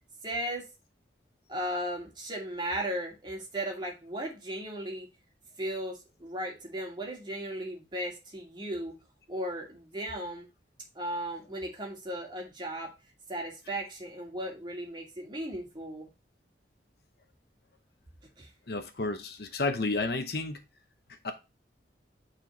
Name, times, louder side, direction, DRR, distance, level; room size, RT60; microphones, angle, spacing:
voice 1, 0.2-0.7 1.5-5.1 5.6-9.0 9.3-10.5 10.9-12.9 13.3-16.1 18.4-18.5, right 1 dB, 25° right, 2.4 m, -36 dB
voice 2, 18.7-20.6 21.2-21.3, left 3 dB, 60° left, 0.9 m, -31 dB
8.8 x 4.3 x 3.0 m
head